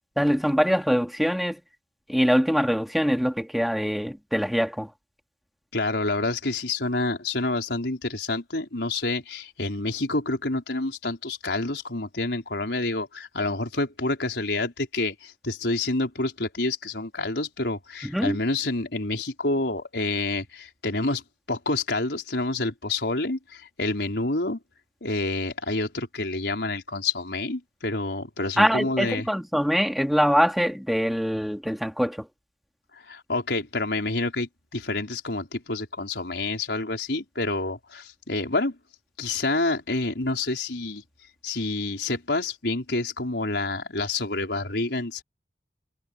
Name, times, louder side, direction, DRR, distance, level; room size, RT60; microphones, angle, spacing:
voice 1, 0.2-1.6 2.1-4.9 18.0-18.4 28.6-32.2, equal, ahead, 2.6 m, -23 dB
voice 2, 5.7-21.2 21.5-24.6 25.0-29.3 33.1-38.8 39.2-41.0 41.4-45.2, left 2 dB, 80° left, 4.5 m, -28 dB
head